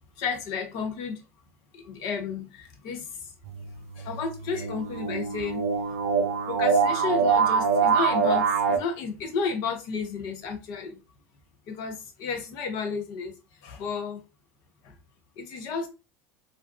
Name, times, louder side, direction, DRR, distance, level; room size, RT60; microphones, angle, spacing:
voice 1, 0.2-1.2 1.7-3.3 4.0-5.6 6.5-11.0 11.7-14.2 14.8-14.9 15.4-15.9, left 5 dB, 60° left, 0.8 m, -32 dB
sound 1, 3.4-8.8, right 5 dB, 80° right, 0.4 m, -24 dB
2.5 x 2.2 x 2.4 m
hypercardioid pair, 80°, 8 cm